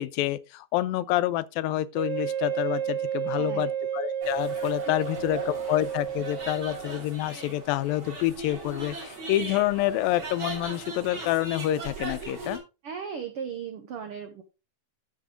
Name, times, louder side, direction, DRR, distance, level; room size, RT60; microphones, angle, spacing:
voice 1, 0.0-12.6, left 14 dB, 90° left, 2.4 m, -28 dB
Wind instrument woodwind instrument, 2.0-7.0, right 9 dB, 55° right, 3.1 m, -31 dB
voice 2, 3.4-3.7 5.6-5.8 12.8-14.4, right 7 dB, 80° right, 1.2 m, -37 dB
sound 1, 4.2-12.6, right 2 dB, 35° right, 3.5 m, -39 dB
13.0 x 6.0 x 3.7 m
omnidirectional pair, 4.0 m